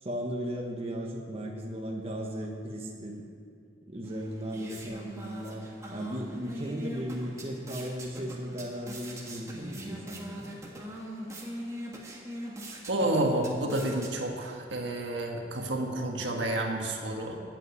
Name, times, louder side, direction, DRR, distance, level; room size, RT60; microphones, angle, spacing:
voice 1, 0.0-3.3 3.9-5.6 5.9-10.5 16.2-16.3, equal, 30° right, -1 dB, 1.2 m, -36 dB
sound 1, 4.0-14.6, right 1 dB, 15° right, 1.6 m, -42 dB
voice 2, 12.9-17.4, right 1 dB, 75° right, 1 dB, 1.6 m, -30 dB
8.9 x 8.5 x 9.3 m, 2.3 s
head